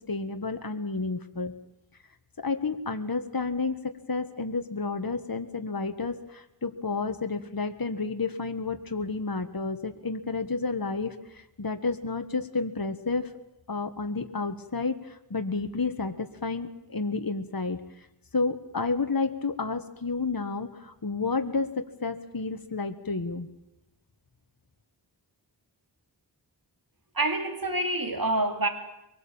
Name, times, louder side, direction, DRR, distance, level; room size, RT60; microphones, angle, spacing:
voice 1, 0.1-1.5 2.4-13.3 13.7-17.8 18.3-23.5, left 4 dB, 50° left, 6 dB, 1.7 m, -31 dB
voice 2, 27.1-28.7, right 2 dB, 50° right, 6 dB, 3.1 m, -27 dB
24.0 x 18.5 x 8.8 m, 0.89 s
wide cardioid pair, 55°, 44 cm